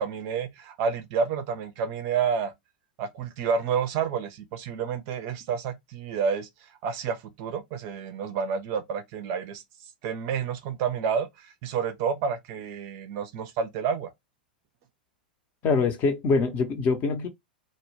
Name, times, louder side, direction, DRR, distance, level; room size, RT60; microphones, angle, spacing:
voice 1, 0.0-2.5 3.0-9.6 10.0-14.1, right 6 dB, 40° right, 0.5 m, -29 dB
voice 2, 15.6-17.3, left 4 dB, 30° left, 0.6 m, -24 dB
2.2 x 2.0 x 3.1 m
figure-of-eight pair, 90°, 5 cm